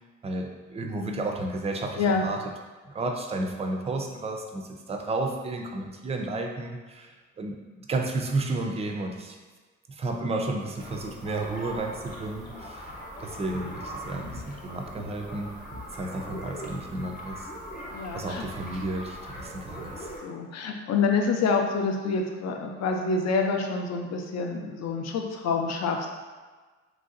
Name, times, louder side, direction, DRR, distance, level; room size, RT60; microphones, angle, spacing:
voice 1, 0.2-2.4 2.8-9.4 9.9-12.9 13.2-17.5 18.1-20.1, right 2 dB, 20° right, 3 dB, 0.3 m, -32 dB
sound 1, 10.8-20.2, equal, 30° left, 0.8 m, -41 dB
voice 2, 17.9-18.4 20.2-26.1, left 4 dB, 60° left, 3 dB, 0.5 m, -27 dB
3.1 x 2.6 x 2.5 m, 1.4 s
cardioid pair, 90°, 30 cm